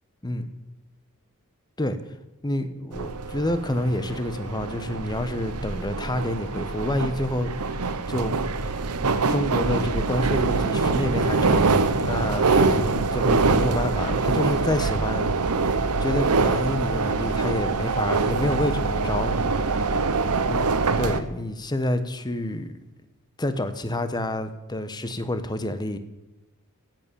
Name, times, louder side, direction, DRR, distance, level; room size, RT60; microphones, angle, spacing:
voice 1, 2.4-7.6 8.1-8.4 9.3-15.4 16.0-20.0 20.5-20.7 21.0-22.7 23.4-26.0, left 1 dB, 20° left, 10 dB, 1.0 m, -28 dB
sound 1, 2.9-21.2, right 4 dB, 85° right, 0.9 m, -24 dB
15.5 x 9.1 x 7.0 m, 1.0 s
head